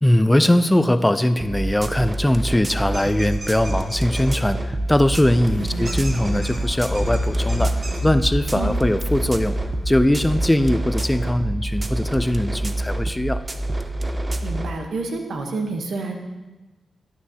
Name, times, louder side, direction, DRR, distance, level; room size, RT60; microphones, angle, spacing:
voice 1, 0.0-7.7 8.0-9.6 9.9-13.4, left 1 dB, 15° left, 12 dB, 0.4 m, -20 dB
sound 1, 1.4-14.7, right 1 dB, 30° right, 0.6 m, -27 dB
sound 2, 2.9-4.3 5.8-8.0, right 2 dB, 55° right, 1.3 m, -38 dB
sound 3, 4.9-11.1, left 1 dB, 60° left, 2.0 m, -29 dB
voice 2, 5.6-5.9 8.5-8.7 10.6-10.7 14.4-16.2, right 3 dB, 80° right, 3 dB, 0.9 m, -29 dB
11.0 x 6.0 x 2.8 m, 1.2 s
cardioid pair, 50°, 0 cm